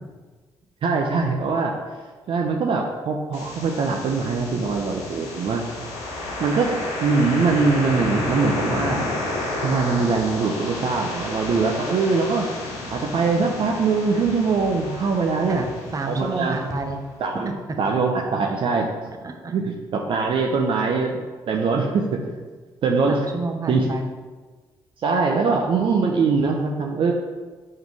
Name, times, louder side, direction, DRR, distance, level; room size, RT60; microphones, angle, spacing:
voice 1, 0.8-1.7 2.3-5.6 6.4-6.7 7.0-9.1 9.6-12.5 12.9-15.6 16.1-16.6 17.2-17.5 17.8-18.9 19.5-21.2 21.5-22.3 22.8-23.3 23.7-23.9 25.0-27.1, right 4 dB, 60° right, 1 dB, 0.6 m, -22 dB
sound 1, 3.3-17.2, left 2 dB, 85° left, 1.0 m, -31 dB
voice 2, 15.6-17.0 19.2-19.5 23.1-24.0, right 2 dB, 35° right, 4 dB, 0.9 m, -29 dB
5.4 x 3.8 x 4.7 m, 1.4 s
supercardioid pair, 55°, 10 cm